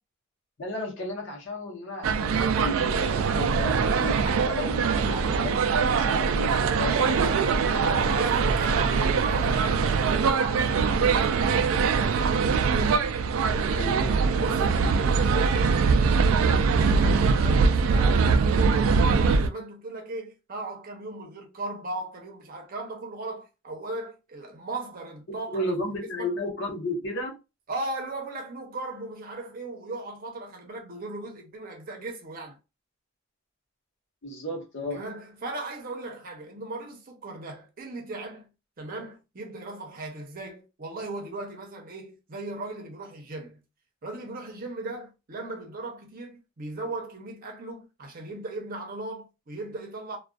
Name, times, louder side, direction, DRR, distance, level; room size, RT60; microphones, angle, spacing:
voice 1, 0.6-7.3 7.6-8.2 8.6-8.8 13.7-14.2 25.3-27.4 34.2-35.0, left 1 dB, 65° left, 0.8 m, -33 dB
sound 1, 2.0-19.5, right 5 dB, 90° right, 0.3 m, -23 dB
voice 2, 7.0-7.5 7.8-12.5 14.4-16.5 16.8-26.3 27.7-32.6 34.9-38.5 38.8-43.6 44.0-50.2, right 2 dB, 45° right, 0.7 m, -37 dB
2.4 x 2.3 x 2.3 m
head